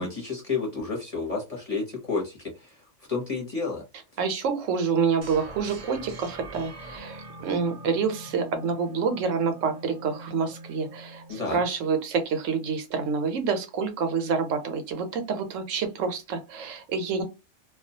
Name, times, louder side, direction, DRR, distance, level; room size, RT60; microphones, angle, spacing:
voice 1, 0.0-2.8 3.1-3.8 11.3-11.6, left 4 dB, 30° left, 0.9 m, -30 dB
voice 2, 4.2-17.2, right 5 dB, 80° right, 1.0 m, -27 dB
sound 1, 5.2-12.1, right 1 dB, 45° right, 0.4 m, -43 dB
2.3 x 2.3 x 2.7 m
omnidirectional pair, 1.3 m